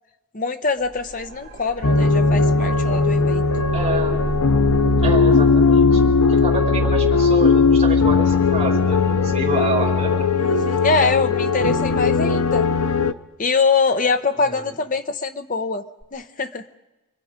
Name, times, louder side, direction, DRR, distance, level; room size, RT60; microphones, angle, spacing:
voice 1, 0.3-3.4 10.4-12.7 13.4-15.8 16.1-16.6, left 4 dB, 35° left, 8 dB, 0.9 m, -23 dB
sound 1, 0.8-13.7 16.0-16.1, right 1 dB, 70° right, 2.1 m, -38 dB
sound 2, 1.8-13.1, left 4 dB, 85° left, 0.8 m, -18 dB
voice 2, 3.7-4.3 5.0-10.3 14.4-14.6, right 2 dB, 30° right, -4 dB, 4.9 m, -28 dB
29.5 x 22.5 x 5.2 m, 1.1 s
head